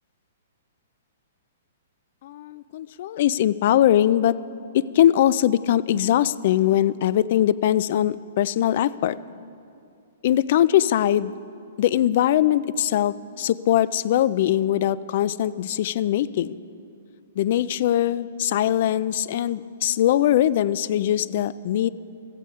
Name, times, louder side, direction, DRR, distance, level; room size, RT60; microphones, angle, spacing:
voice 1, 2.2-4.4 4.7-9.2 10.2-11.3 11.8-16.6 17.4-21.9, left 12 dB, 50° left, 18 dB, 0.3 m, -21 dB
15.0 x 14.5 x 3.7 m, 2.6 s
hypercardioid pair, 160°, 0 cm